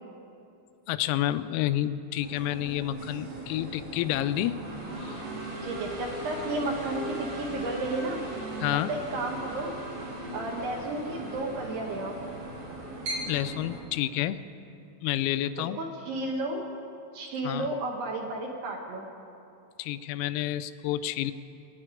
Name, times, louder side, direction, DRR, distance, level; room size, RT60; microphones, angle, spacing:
voice 1, 0.9-4.6 5.0-5.2 8.6-8.9 13.2-14.4 15.0-15.8 17.4-17.7 19.8-21.3, left 13 dB, 90° left, 12 dB, 3.3 m, -29 dB
sound 1, 2.2-13.8, right 1 dB, 45° right, 3.3 m, -38 dB
voice 2, 5.6-8.2 8.9-9.7 10.3-12.2 15.6-16.7 17.1-19.1, right 2 dB, 70° right, 0 dB, 2.6 m, -33 dB
25.5 x 9.4 x 5.1 m, 2.6 s
omnidirectional pair, 6.0 m